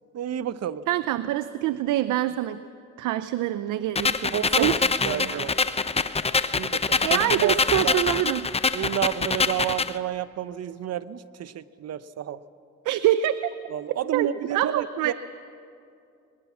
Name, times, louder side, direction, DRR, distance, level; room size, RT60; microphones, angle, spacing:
voice 1, 0.1-0.9 4.3-5.7 6.5-7.5 7.8-8.0 8.7-12.4 13.7-15.1, right 10 dB, 55° right, 14 dB, 0.8 m, -30 dB
voice 2, 0.9-2.6 3.0-4.8 5.0-5.4 7.0-8.5 12.9-13.5 14.1-15.1, right 13 dB, 90° right, 13 dB, 0.6 m, -25 dB
sound 1, 3.9-9.9, left 4 dB, 20° left, 0.7 m, -25 dB
22.0 x 21.0 x 7.2 m, 2.5 s
cardioid pair, 90°, 30 cm